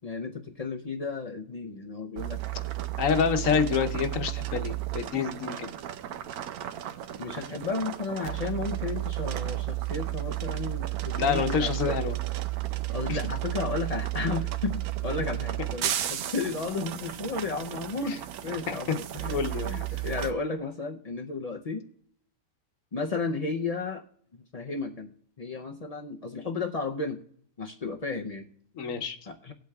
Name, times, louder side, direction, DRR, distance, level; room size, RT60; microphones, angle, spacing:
voice 1, 0.0-2.7 3.4-3.6 7.2-12.0 12.9-18.2 18.4-19.4 19.7-21.8 22.9-24.0 24.3-27.2 27.6-28.5 29.3-29.5, left 4 dB, 85° left, 3 dB, 0.3 m, -33 dB
sound 1, 2.2-20.3, right 14 dB, 80° right, 1.1 m, -33 dB
voice 2, 3.0-5.7 11.1-12.2 13.1-13.2 18.1-18.2 18.7-18.8 19.3-20.0 28.8-29.2, left 6 dB, 60° left, 8 dB, 1.1 m, -27 dB
19.0 x 8.1 x 2.3 m, 0.64 s
omnidirectional pair, 1.6 m